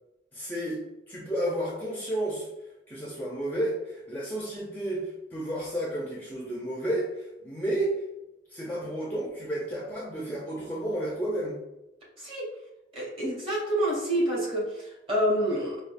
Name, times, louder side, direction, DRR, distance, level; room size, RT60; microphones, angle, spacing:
voice 1, 0.3-0.8 1.1-2.5 2.9-8.0 8.5-11.6, right 1 dB, 10° left, -5 dB, 0.6 m, -31 dB
voice 2, 12.9-15.8, equal, 30° right, -5 dB, 1.5 m, -28 dB
5.1 x 2.4 x 2.5 m, 0.94 s
head